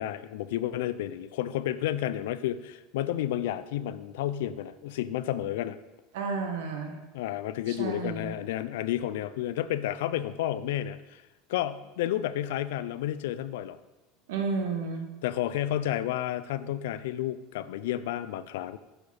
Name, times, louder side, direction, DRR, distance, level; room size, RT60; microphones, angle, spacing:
voice 1, 0.0-5.8 7.1-11.2 11.5-13.8 15.2-18.8, left 12 dB, 85° left, 14 dB, 0.3 m, -31 dB
voice 2, 6.1-7.0 7.7-8.3 14.3-15.1, right 4 dB, 85° right, 5 dB, 1.0 m, -32 dB
6.4 x 4.7 x 4.1 m, 1.1 s
supercardioid pair, 150°, 0 cm